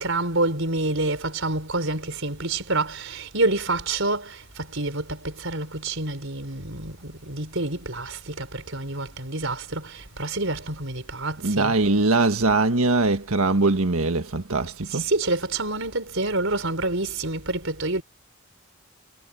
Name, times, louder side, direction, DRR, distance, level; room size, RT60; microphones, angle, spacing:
voice 1, 0.0-11.7 14.9-18.0, right 2 dB, 60° right, 5.0 m, -27 dB
voice 2, 11.4-15.1, right 3 dB, 80° right, 1.6 m, -21 dB
head